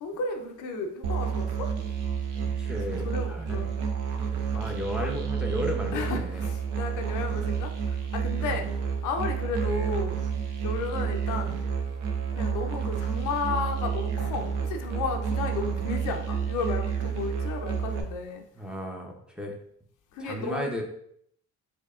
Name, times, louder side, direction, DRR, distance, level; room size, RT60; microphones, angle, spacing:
voice 1, 0.0-1.7 3.0-3.9 4.5-5.1 5.9-8.7 9.0-10.2 10.6-11.6 12.4-18.4 20.1-20.7, left 4 dB, 85° left, 4 dB, 0.6 m, -33 dB
Musical instrument, 1.0-18.0, right 7 dB, 80° right, 0.7 m, -30 dB
voice 2, 2.4-3.7 4.5-6.4 8.4-8.5 15.7-15.9 18.5-19.6 20.2-20.8, left 1 dB, 5° right, -1 dB, 0.7 m, -34 dB
4.4 x 2.8 x 2.4 m, 0.68 s
cardioid pair, 90°, 30 cm